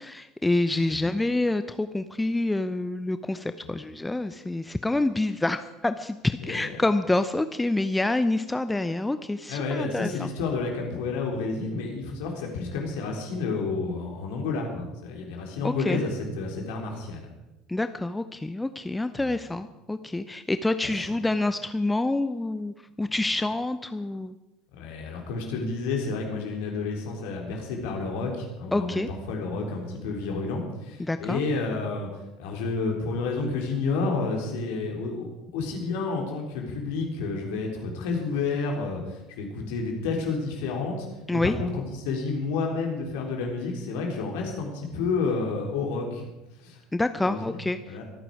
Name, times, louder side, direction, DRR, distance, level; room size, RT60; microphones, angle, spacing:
voice 1, 0.0-10.3 15.6-16.0 17.7-24.4 28.7-29.1 31.0-31.4 41.3-41.6 46.9-48.0, left 2 dB, 10° left, 11 dB, 0.7 m, -27 dB
voice 2, 6.4-6.8 9.5-17.3 19.1-19.4 20.8-20.9 24.7-32.1 32.4-35.3 35.5-46.3 46.6-46.8 47.2-48.0, left 4 dB, 65° left, 1 dB, 3.7 m, -30 dB
24.0 x 9.2 x 4.9 m, 1.0 s
figure-of-eight pair, 70°, 0 cm